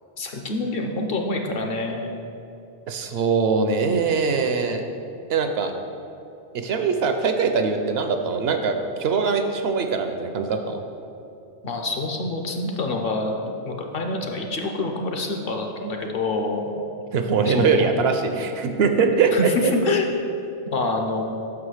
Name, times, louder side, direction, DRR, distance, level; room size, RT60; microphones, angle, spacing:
voice 1, 0.2-2.1 11.6-13.4 13.7-16.6 17.5-17.7 19.3-20.1 20.7-21.2, left 2 dB, 60° left, 3 dB, 0.8 m, -26 dB
voice 2, 2.9-4.8 5.3-5.7 6.5-10.8 17.1-19.3 19.6-19.7, right 5 dB, 70° right, 6 dB, 0.7 m, -22 dB
5.8 x 4.8 x 6.3 m, 2.8 s
omnidirectional pair, 1.2 m